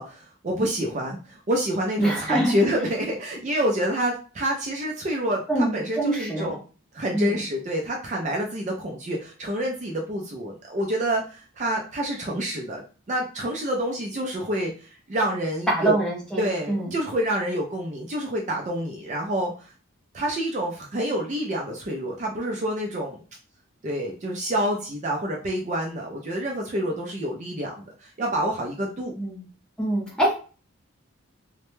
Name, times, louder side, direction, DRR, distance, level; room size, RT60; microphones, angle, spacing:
voice 1, 0.0-6.6 6.9-15.9 16.4-19.7 20.1-23.2 23.8-29.1, equal, 35° right, 0 dB, 0.4 m, -28 dB
voice 2, 2.0-2.5 5.5-6.5 7.1-7.4 15.7-16.9 29.2-29.5 29.8-30.4, right 1 dB, 5° left, -3 dB, 0.6 m, -24 dB
2.1 x 2.1 x 3.0 m, 0.36 s
head